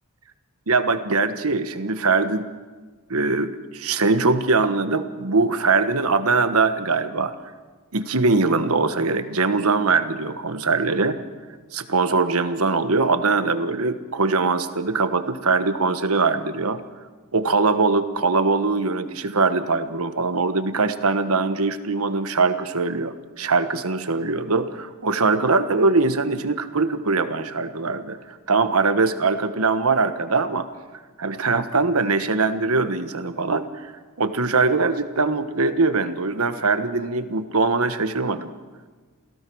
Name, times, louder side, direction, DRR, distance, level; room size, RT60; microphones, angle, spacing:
voice 1, 0.7-2.5 3.1-7.3 7.9-11.2 11.7-16.8 17.3-30.7 31.2-33.9 34.2-38.5, right 3 dB, 75° right, 10 dB, 1.4 m, -22 dB
28.0 x 17.0 x 6.3 m, 1.4 s
head